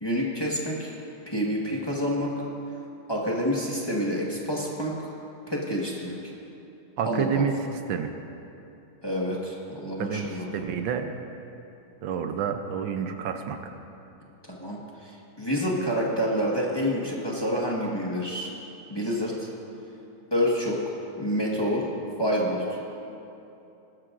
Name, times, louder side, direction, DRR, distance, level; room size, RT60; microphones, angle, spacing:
voice 1, 0.0-0.9 1.3-2.3 3.1-5.1 5.5-6.3 7.0-7.4 9.0-10.5 14.5-18.5 18.9-19.5 20.3-20.8 21.2-21.9 22.2-22.6, equal, 15° left, -4 dB, 1.2 m, -28 dB
voice 2, 7.0-7.6 7.9-8.1 10.0-11.1 12.0-13.7, right 7 dB, 70° right, 6 dB, 1.3 m, -29 dB
20.5 x 12.5 x 2.5 m, 2.8 s
omnidirectional pair, 2.3 m